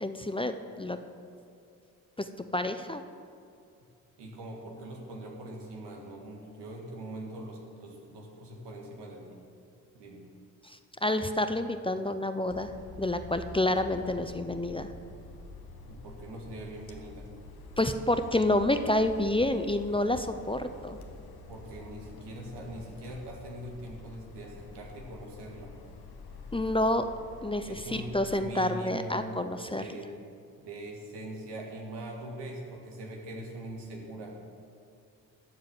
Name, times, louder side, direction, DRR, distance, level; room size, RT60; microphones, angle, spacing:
voice 1, 0.0-1.0 2.2-2.3 2.5-3.0 11.0-12.7 13.0-14.9 17.8-21.0 26.5-27.1 27.4-29.8, left 1 dB, 15° left, 9 dB, 0.6 m, -28 dB
voice 2, 4.2-9.4 9.9-10.3 15.9-17.3 21.5-25.8 27.6-29.4 29.7-30.1 30.6-34.4, right 1 dB, 75° right, 0 dB, 1.9 m, -42 dB
sound 1, 12.5-28.4, left 3 dB, 60° left, 1.2 m, -47 dB
13.0 x 4.8 x 7.7 m, 2.4 s
hypercardioid pair, 40°, 41 cm